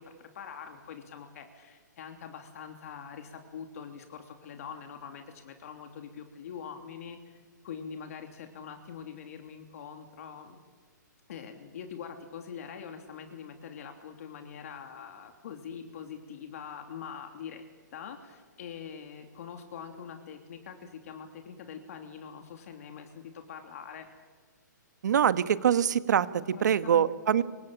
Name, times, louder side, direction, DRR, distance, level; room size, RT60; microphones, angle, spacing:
voice 1, 0.0-10.6 11.3-17.6 17.9-24.1 26.5-27.1, left 7 dB, 50° left, 5 dB, 3.1 m, -44 dB
voice 2, 25.0-27.4, right 9 dB, 65° right, 13 dB, 1.5 m, -24 dB
26.0 x 24.5 x 8.8 m, 1.5 s
hypercardioid pair, 160°, 10 cm